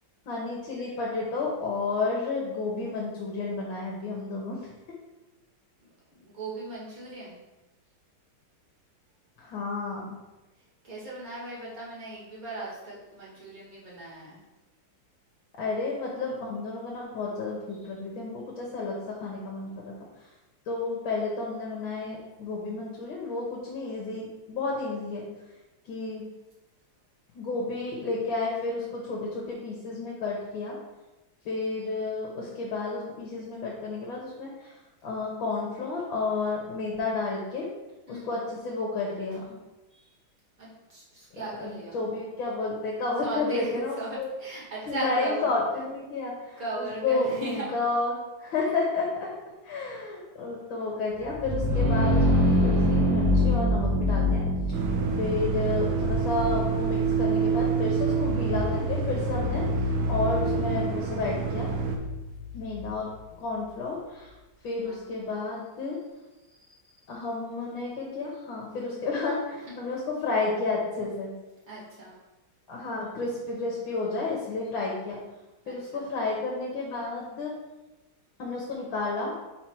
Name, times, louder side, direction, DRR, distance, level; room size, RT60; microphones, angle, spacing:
voice 1, 0.3-4.6 9.4-10.2 15.6-19.9 20.2-20.3 20.7-25.3 25.9-26.2 27.3-30.8 31.5-34.7 35.0-37.7 38.1-39.6 41.3-44.3 44.9-49.3 49.6-54.4 55.2-59.6 60.1-61.7 62.5-64.3 64.6-66.0 67.1-71.3 72.7-75.2 75.7-77.6 78.4-79.3, left 3 dB, 70° left, -3 dB, 1.8 m, -31 dB
voice 2, 6.1-7.4 10.8-14.4 38.1-38.3 39.9-40.0 40.6-42.0 43.2-45.5 46.6-47.7 64.8-65.0 66.7-67.0 71.7-72.1 75.6-76.1, right 2 dB, 45° right, -6 dB, 2.2 m, -37 dB
sound 1, 51.2-62.8, left 1 dB, 65° right, 2.3 m, -26 dB
sound 2, 54.7-62.0, right 6 dB, 80° right, 1.6 m, -27 dB
6.0 x 4.2 x 4.5 m, 1.0 s
omnidirectional pair, 2.3 m